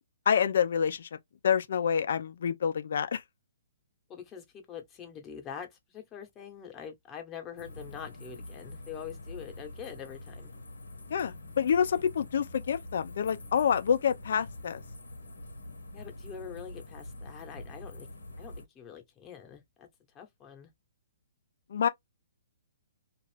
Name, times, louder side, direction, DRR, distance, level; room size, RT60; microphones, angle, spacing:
voice 1, 0.3-1.1 1.4-3.2 11.1-14.8 21.7-21.9, left 7 dB, 65° left, 0.5 m, -27 dB
voice 2, 4.1-10.5 15.9-18.1 18.4-19.9 20.1-20.7, left 8 dB, 20° left, 1.0 m, -44 dB
sound 1, 7.6-18.6, left 1 dB, 90° left, 1.0 m, -45 dB
2.5 x 2.4 x 3.3 m
hypercardioid pair, 135°, 0 cm